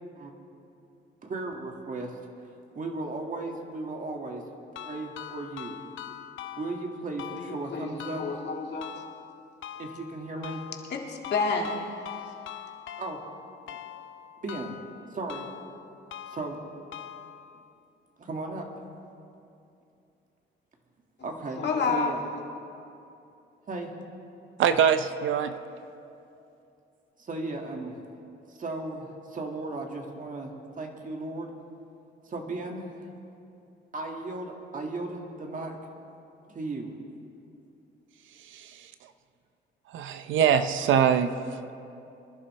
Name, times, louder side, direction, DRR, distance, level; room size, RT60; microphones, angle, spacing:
voice 1, 1.2-2.1 2.8-4.4 4.8-5.8 6.6-8.3 9.8-10.6 13.0-13.2 13.7-13.8 14.4-14.7 15.1-15.5 16.3-16.6 18.2-18.6 21.2-21.6 21.9-22.2 23.7-23.9 27.2-28.0 28.5-31.5 32.2-32.9 33.9-35.8 36.5-37.0, right 2 dB, 40° right, 2 dB, 1.9 m, -35 dB
sound 1, 4.8-17.7, left 10 dB, 80° left, 0.6 m, -43 dB
voice 2, 7.4-7.9 8.2-8.9 10.9-11.9 21.6-22.1, left 4 dB, 60° left, 1 dB, 1.9 m, -29 dB
voice 3, 24.6-25.6 38.4-38.9 39.9-41.7, right 8 dB, 75° right, 10 dB, 0.7 m, -24 dB
25.0 x 11.0 x 3.2 m, 2.7 s
cardioid pair, 90°, 20 cm